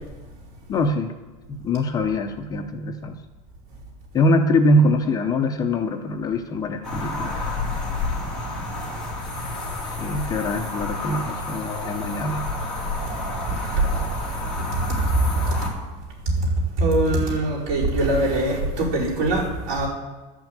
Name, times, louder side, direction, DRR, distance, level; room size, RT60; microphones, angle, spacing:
voice 1, 0.7-1.1 1.5-3.2 4.1-7.3 9.8-12.5, left 1 dB, 20° left, 6 dB, 0.6 m, -23 dB
sound 1, 6.8-15.7, left 2 dB, 5° left, 2.4 m, -29 dB
voice 2, 13.5-13.8 15.1-15.2 15.5-15.6 16.8-19.9, right 2 dB, 65° right, -5 dB, 5.0 m, -22 dB
11.5 x 6.2 x 8.8 m, 1.2 s
cardioid pair, 170°, 18 cm